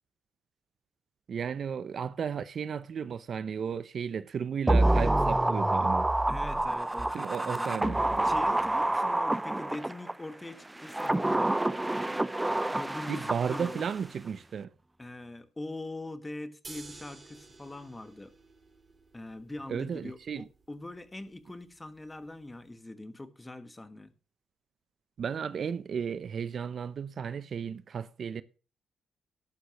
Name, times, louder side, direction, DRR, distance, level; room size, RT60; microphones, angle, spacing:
voice 1, 1.3-6.1 7.1-8.0 13.1-14.7 19.7-20.4 25.2-28.4, right 7 dB, 50° right, 0.6 m, -34 dB
sound 1, 4.7-10.1 10.8-14.0 14.3-14.4, right 1 dB, 10° right, 0.4 m, -27 dB
voice 2, 6.3-7.9 8.2-11.5 12.7-13.9 15.0-18.3 19.1-24.1, left 2 dB, 15° left, 1.4 m, -42 dB
sound 2, 16.6-22.7, right 3 dB, 30° right, 3.0 m, -53 dB
13.0 x 11.5 x 3.0 m
cardioid pair, 90°, 0 cm